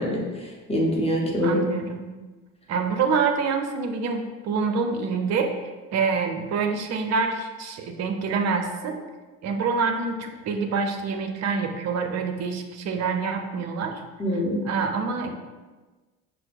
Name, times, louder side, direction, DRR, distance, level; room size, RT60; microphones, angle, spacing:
voice 1, 0.0-1.6 14.2-14.6, equal, 15° left, -2 dB, 0.9 m, -25 dB
voice 2, 1.4-2.0 2.7-9.0 9.4-14.0 14.6-15.3, right 5 dB, 35° right, 5 dB, 0.6 m, -26 dB
5.6 x 2.1 x 3.4 m, 1.3 s
figure-of-eight pair, 60°, 46 cm